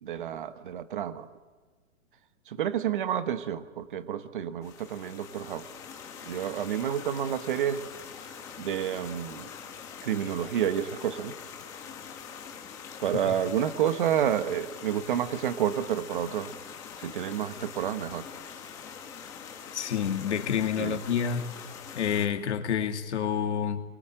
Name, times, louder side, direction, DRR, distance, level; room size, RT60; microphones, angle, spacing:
voice 1, 0.0-1.3 2.5-5.6 6.2-7.8 8.6-9.5 10.0-11.3 13.0-16.5 17.0-18.2 20.8-21.0, right 9 dB, 35° right, 12 dB, 1.2 m, -29 dB
sound 1, 4.6-22.3, left 7 dB, 10° left, 1.1 m, -44 dB
voice 2, 19.7-21.5 22.0-23.8, left 8 dB, 55° left, 5 dB, 2.5 m, -28 dB
27.0 x 22.5 x 9.0 m, 1.4 s
hypercardioid pair, 175°, 42 cm